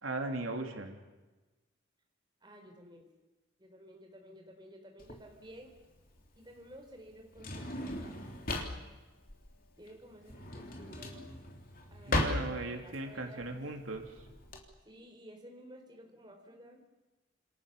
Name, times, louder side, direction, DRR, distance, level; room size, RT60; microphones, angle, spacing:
voice 1, 0.0-1.0 12.1-14.1, right 2 dB, 85° right, 4 dB, 3.4 m, -37 dB
voice 2, 2.4-3.1 3.6-5.7 6.4-8.1 9.8-11.2 11.9-13.6 14.9-16.8, equal, 20° right, 2 dB, 4.0 m, -53 dB
Drawer open or close, 5.0-14.6, left 1 dB, 45° left, 3.4 m, -38 dB
29.0 x 27.5 x 7.0 m, 1.2 s
head